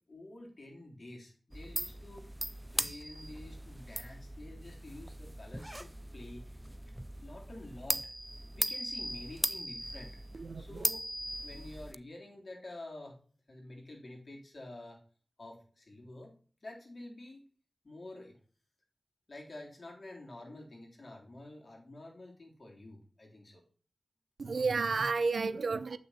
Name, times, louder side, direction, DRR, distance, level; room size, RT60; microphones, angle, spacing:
voice 1, 0.1-2.3 2.7-6.7 7.2-8.1 8.5-10.2 10.6-11.1 11.4-13.2 13.5-15.0 15.4-16.3 16.6-17.4 17.8-18.4 19.3-23.6, left 1 dB, 55° left, 3.5 m, -49 dB
sound 1, 1.5-11.9, right 1 dB, 10° right, 0.3 m, -39 dB
voice 2, 10.3-10.8 24.4-26.0, right 4 dB, 80° right, 0.6 m, -32 dB
7.7 x 6.1 x 4.2 m
wide cardioid pair, 55°, 0 cm